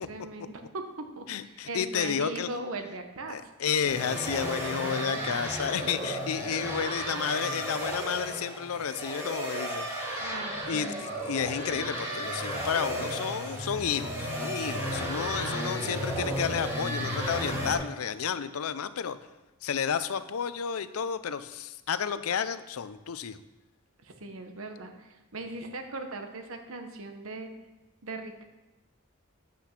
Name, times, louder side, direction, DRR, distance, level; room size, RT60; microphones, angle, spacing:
voice 1, 0.0-3.4 10.2-11.0 24.0-27.5 28.0-28.4, right 2 dB, 70° right, 6 dB, 1.0 m, -39 dB
voice 2, 1.3-2.5 3.3-10.3 10.7-19.2 19.6-23.4, left 7 dB, 90° left, 13 dB, 0.5 m, -31 dB
sound 1, 3.8-17.8, equal, 10° right, 2.4 m, -33 dB
8.4 x 5.9 x 5.9 m, 1.0 s
head